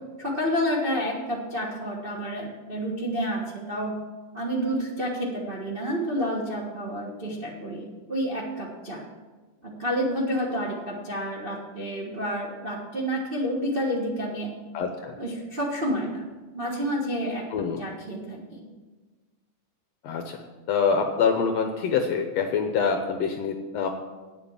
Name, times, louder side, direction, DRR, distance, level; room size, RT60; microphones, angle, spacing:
voice 1, 0.2-4.0 4.3-9.0 9.6-14.5 15.2-16.2 16.5-17.4 17.8-18.6, equal, 50° right, -4 dB, 0.6 m, -29 dB
voice 2, 14.7-15.1 17.5-17.8 20.0-20.4 20.7-23.9, left 6 dB, 75° left, 5 dB, 1.6 m, -25 dB
9.2 x 7.6 x 7.2 m, 1.3 s
omnidirectional pair, 3.7 m